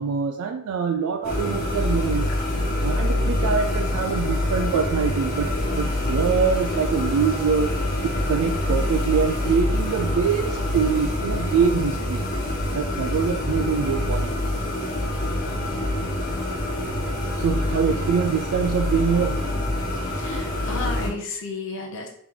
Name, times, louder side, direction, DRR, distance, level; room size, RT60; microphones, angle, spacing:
voice 1, 0.0-2.3 2.8-12.3 12.7-14.4 17.4-19.5, right 6 dB, 75° right, 5 dB, 0.3 m, -24 dB
sound 1, 1.2-21.1, left 1 dB, 45° left, 1.0 m, -25 dB
voice 2, 20.1-22.1, left 3 dB, 60° left, 0 dB, 0.7 m, -33 dB
3.7 x 3.0 x 3.7 m, 0.70 s
head